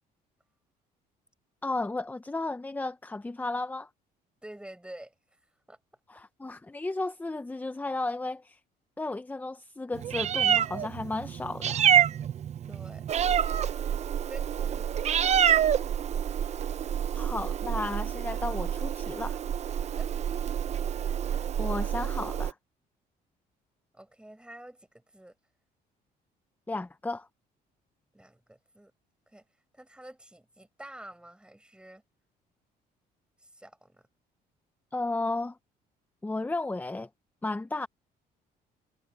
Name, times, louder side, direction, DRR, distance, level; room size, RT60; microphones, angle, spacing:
voice 1, 1.6-3.9 6.1-8.6 9.0-11.8 17.1-19.4 21.6-22.6 26.7-27.3 34.9-35.6 36.2-37.1 37.4-37.9, left 2 dB, 10° left, 0.7 m, -34 dB
voice 2, 4.4-5.4 5.7-5.8 12.7-13.1 14.3-15.0 19.8-20.1 23.9-25.4 28.1-28.9 29.3-29.4 29.7-32.0 33.4-34.1, right 1 dB, 5° right, 7.2 m, -48 dB
Meow, 10.0-22.5, right 9 dB, 40° right, 0.6 m, -27 dB
sound 1, 12.7-19.4, left 14 dB, 75° left, 7.5 m, -62 dB
cardioid pair, 110°, 17 cm